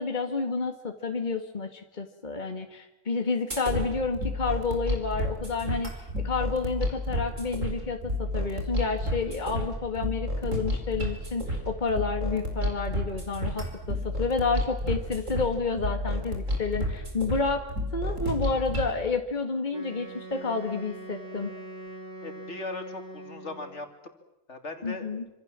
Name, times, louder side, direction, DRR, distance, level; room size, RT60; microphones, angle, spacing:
voice 1, 0.0-17.6 17.9-21.5 24.8-25.3, left 4 dB, 35° left, 5 dB, 2.0 m, -30 dB
sound 1, 3.5-18.9, left 1 dB, 80° right, 5.4 m, -31 dB
Wind instrument woodwind instrument, 19.7-23.9, right 1 dB, 45° right, 3.5 m, -43 dB
voice 2, 22.2-23.9 24.5-25.1, left 2 dB, 65° left, 6 dB, 3.2 m, -38 dB
26.5 x 26.5 x 7.5 m, 0.95 s
omnidirectional pair, 1.3 m